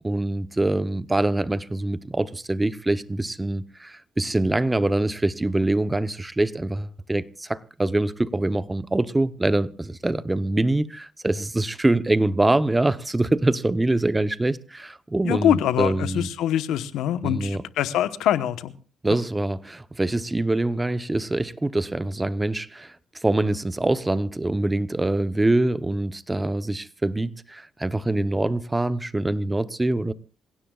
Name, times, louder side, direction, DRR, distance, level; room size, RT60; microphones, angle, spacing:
voice 1, 0.0-16.3 17.2-17.6 19.0-22.9 23.2-30.1, right 2 dB, 15° right, 0.8 m, -24 dB
voice 2, 15.2-18.7, left 11 dB, 85° left, 1.0 m, -24 dB
27.0 x 16.5 x 2.3 m
cardioid pair, 90°, 0 cm